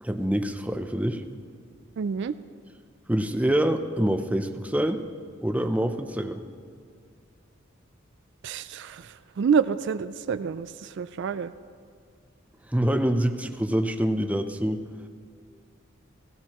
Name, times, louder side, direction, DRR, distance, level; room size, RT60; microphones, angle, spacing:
voice 1, 0.0-1.2 3.1-5.0 5.4-6.4 12.7-14.8, right 1 dB, 5° right, 7 dB, 0.5 m, -25 dB
voice 2, 2.0-2.3 8.4-9.1 9.4-11.5, right 6 dB, 60° right, 13 dB, 0.3 m, -27 dB
16.5 x 16.0 x 3.0 m, 2.2 s
head